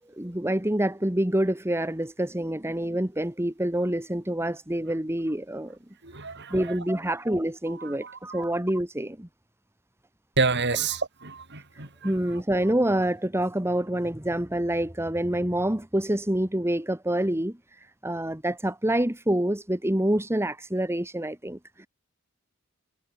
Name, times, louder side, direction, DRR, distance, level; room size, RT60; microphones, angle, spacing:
voice 1, 0.2-5.8 6.5-9.3 12.0-17.6 18.0-21.9, right 1 dB, 10° right, 1.9 m, -27 dB
voice 2, 6.1-6.6 8.0-8.4 10.4-11.0 11.2-12.1, right 4 dB, 55° right, 7.4 m, -28 dB
head